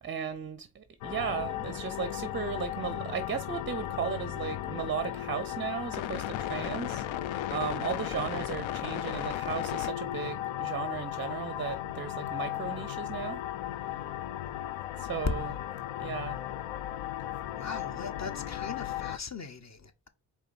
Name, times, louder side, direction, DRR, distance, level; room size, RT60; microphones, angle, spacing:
voice 1, 0.0-7.3 7.5-13.4 15.0-15.6 16.0-16.4, right 7 dB, 25° right, 0.5 m, -36 dB
sound 1, 1.0-19.2, left 12 dB, 70° left, 0.5 m, -35 dB
voice 2, 17.6-20.1, left 5 dB, 35° left, 0.8 m, -40 dB
4.5 x 2.7 x 4.1 m
hypercardioid pair, 40°, 49 cm